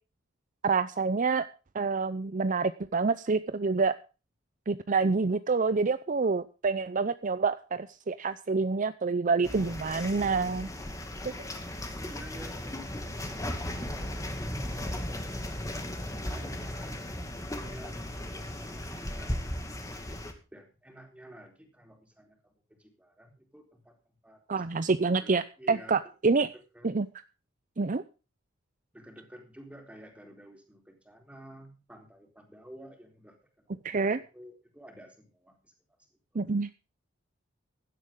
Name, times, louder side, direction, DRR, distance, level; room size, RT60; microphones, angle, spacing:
voice 1, 0.6-1.5 1.7-3.9 4.7-10.7 24.5-26.5 26.8-27.1 27.8-28.0 33.8-34.2 36.3-36.7, right 4 dB, 40° right, 13 dB, 0.6 m, -27 dB
sound 1, 9.4-20.3, left 1 dB, 15° left, 2.3 m, -36 dB
voice 2, 11.6-18.0 18.3-20.2 20.5-24.4 24.7-24.8 25.1-26.0 26.7-26.9 28.9-33.9 34.3-35.7 36.3-36.5, right 1 dB, 5° right, 3 dB, 3.9 m, -52 dB
16.0 x 11.5 x 3.7 m, 0.33 s
head